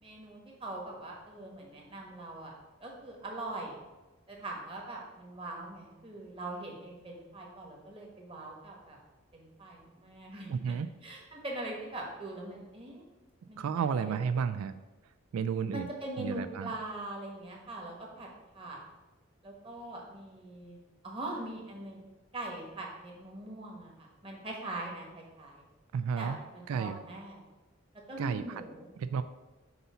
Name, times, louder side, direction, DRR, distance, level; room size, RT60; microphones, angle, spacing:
voice 1, 0.0-2.5 2.8-3.9 4.3-9.0 9.3-10.7 11.0-13.0 13.5-13.6 13.9-14.3 15.7-18.3 18.5-18.8 19.4-20.8 21.0-22.0 22.3-25.7 26.2-27.4 28.1-28.9, right 2 dB, 25° right, -1 dB, 1.2 m, -42 dB
voice 2, 10.5-10.9 13.6-14.7 15.3-15.9 16.2-16.7 25.9-26.4 26.7-27.0 28.2-28.6 29.0-29.2, right 6 dB, 90° right, 12 dB, 0.3 m, -32 dB
7.9 x 2.7 x 5.6 m, 1.1 s
head